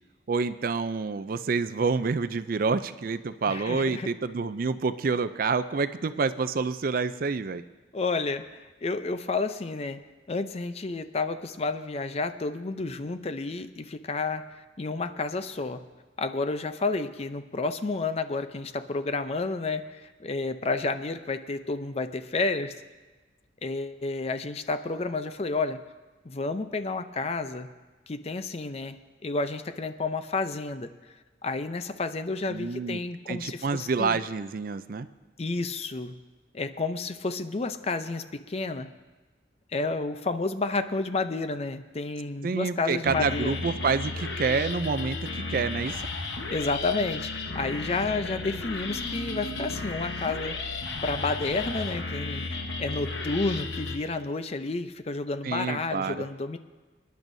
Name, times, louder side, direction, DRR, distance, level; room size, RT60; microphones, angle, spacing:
voice 1, 0.3-7.6 32.5-33.0 33.3-35.1 42.4-46.1 55.4-56.3, right 4 dB, 50° right, 13 dB, 0.4 m, -28 dB
voice 2, 3.5-4.1 7.9-10.0 10.3-15.8 16.2-22.7 23.6-25.8 26.2-27.7 28.1-29.0 29.2-30.9 31.4-34.2 35.4-36.1 36.5-38.9 39.7-43.6 46.5-50.6 51.0-56.6, left 3 dB, 35° left, 10 dB, 0.5 m, -30 dB
sound 1, 43.1-54.0, left 3 dB, 75° left, 1.1 m, -34 dB
26.0 x 10.5 x 2.7 m, 1.2 s
head